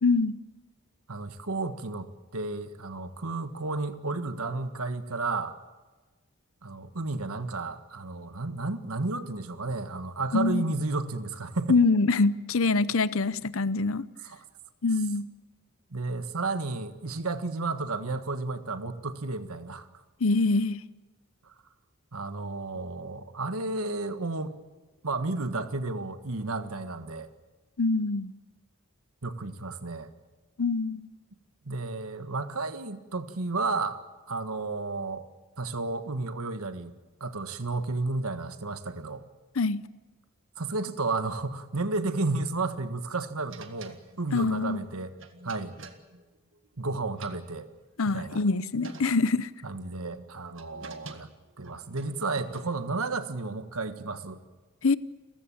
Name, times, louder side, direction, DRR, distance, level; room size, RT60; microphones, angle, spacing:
voice 1, 0.0-0.4 10.3-10.7 11.7-14.1 14.8-15.3 20.2-20.8 27.8-28.3 30.6-31.1 39.6-39.8 44.3-44.8 48.0-49.5 54.8-55.0, left 3 dB, 70° left, 0.7 m, -24 dB
voice 2, 1.1-5.5 6.6-11.8 14.2-14.4 15.9-19.9 22.1-24.6 25.0-27.3 29.2-30.1 31.6-34.0 34.3-35.2 35.6-36.9 37.2-39.2 40.6-45.1 45.4-45.7 46.8-47.7 48.1-48.4 49.6-51.3 51.6-54.4, right 3 dB, 85° right, 1.6 m, -32 dB
sound 1, 43.5-46.8 47.1-48.1 48.5-48.6 48.8-49.5 50.1-53.0, right 3 dB, 60° right, 1.8 m, -47 dB
29.5 x 15.5 x 8.7 m
head